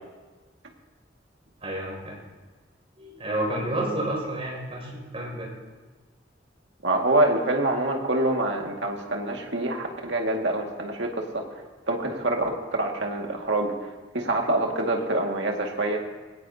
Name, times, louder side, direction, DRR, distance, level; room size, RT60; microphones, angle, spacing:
voice 1, 1.6-2.2 3.0-5.5, right 1 dB, 30° right, -3 dB, 6.2 m, -30 dB
voice 2, 6.8-11.6 11.9-16.0, right 2 dB, 70° right, 1 dB, 2.1 m, -26 dB
21.0 x 17.0 x 2.8 m, 1.3 s
head